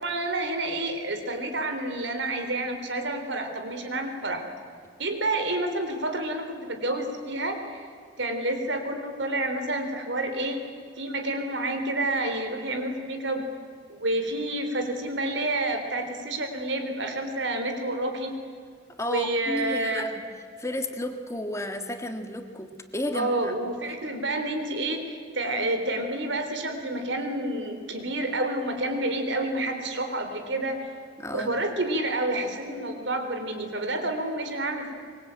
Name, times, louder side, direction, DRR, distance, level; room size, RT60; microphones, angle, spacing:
voice 1, 0.0-4.4 5.0-7.8 8.2-10.6 11.0-13.5 13.9-18.3 19.1-20.1 23.1-30.8 31.3-34.9, right 1 dB, 75° right, 6 dB, 3.9 m, -29 dB
voice 2, 19.0-20.1 20.6-23.5 31.2-31.5, left 1 dB, 15° left, 6 dB, 1.8 m, -32 dB
24.0 x 23.5 x 9.0 m, 2.2 s
head